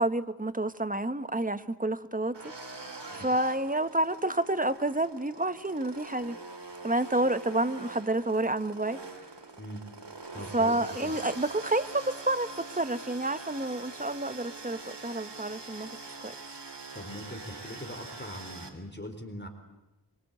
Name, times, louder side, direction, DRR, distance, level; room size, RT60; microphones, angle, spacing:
voice 1, 0.0-2.4 3.1-6.4 6.8-9.0 10.5-16.4, right 2 dB, 20° right, 11 dB, 1.3 m, -29 dB
sound 1, 2.3-18.7, right 3 dB, 85° right, 3.3 m, -44 dB
voice 2, 10.3-11.2 16.9-19.5, left 1 dB, 25° left, 6 dB, 4.1 m, -41 dB
25.5 x 24.0 x 8.2 m, 1.0 s
wide cardioid pair, 45°, 41 cm